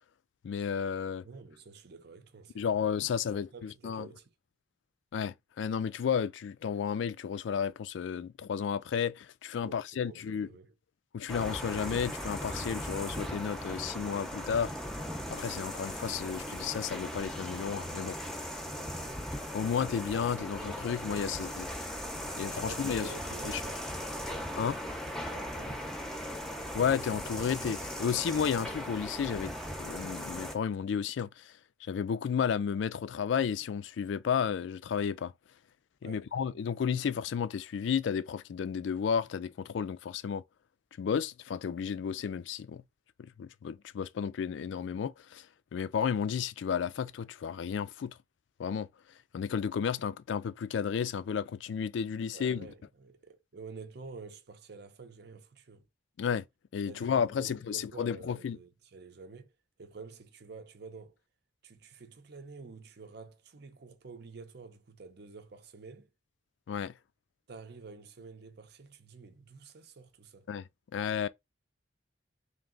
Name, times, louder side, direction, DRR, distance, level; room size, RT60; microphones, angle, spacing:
voice 1, 0.4-1.2 2.6-4.1 5.1-10.5 11.1-14.7 15.3-18.2 19.5-21.7 22.4-23.1 24.5-24.8 26.7-29.5 29.8-31.5 31.8-35.3 36.0-40.4 41.0-42.8 43.2-45.5 45.7-48.2 48.6-48.9 49.3-52.7 56.2-56.4 56.7-58.6 66.7-66.9 70.5-70.6 70.9-71.3, left 7 dB, 75° left, 0.3 m, -32 dB
voice 2, 1.2-2.7 3.3-4.3 9.6-10.7 18.6-19.0 22.6-23.9 25.3-25.9 36.0-36.3 52.3-55.9 56.9-61.2 61.6-66.1 67.5-70.5, right 4 dB, 60° right, 0.7 m, -49 dB
sound 1, 11.3-30.6, equal, 5° left, 0.6 m, -38 dB
3.4 x 2.8 x 3.8 m
head